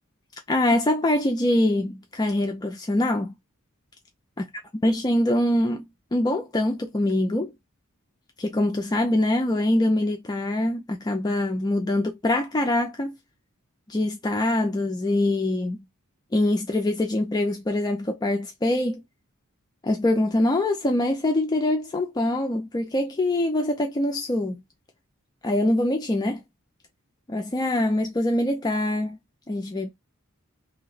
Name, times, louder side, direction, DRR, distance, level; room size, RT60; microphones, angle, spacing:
voice 1, 0.5-3.3 4.8-5.8 6.1-7.5 8.4-13.2 13.9-15.8 16.3-19.0 19.8-24.6 25.4-26.4 27.3-29.2 29.5-29.9, left 1 dB, 20° left, 0.4 m, -24 dB
2.8 x 2.1 x 3.9 m
head